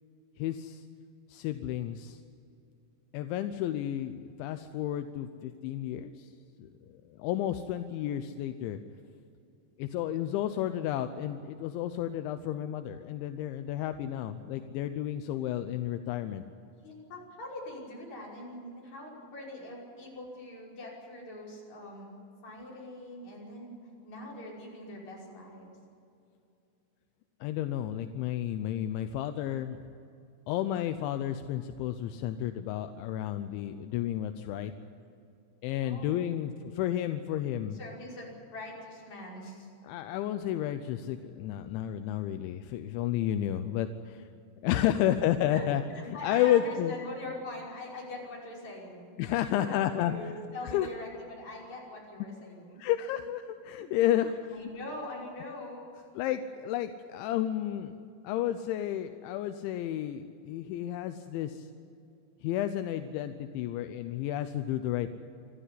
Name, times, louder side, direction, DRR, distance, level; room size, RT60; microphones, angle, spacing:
voice 1, 0.4-0.8 1.3-2.2 3.1-6.3 6.6-6.7 7.2-8.8 9.8-16.4 27.4-29.8 30.5-34.7 35.6-37.8 39.8-44.3 44.6-45.8 46.1-46.9 49.2-50.1 50.7-50.9 52.8-54.6 56.2-58.0 58.2-61.7 62.4-65.2, left 12 dB, 85° left, 9 dB, 3.1 m, -31 dB
voice 2, 16.8-22.2 22.4-23.8 24.0-25.8 35.8-36.3 37.7-39.7 45.5-52.8 53.8-53.9 54.5-56.0, left 1 dB, 40° left, -3 dB, 6.7 m, -43 dB
26.5 x 14.0 x 9.9 m, 2.6 s
omnidirectional pair, 5.3 m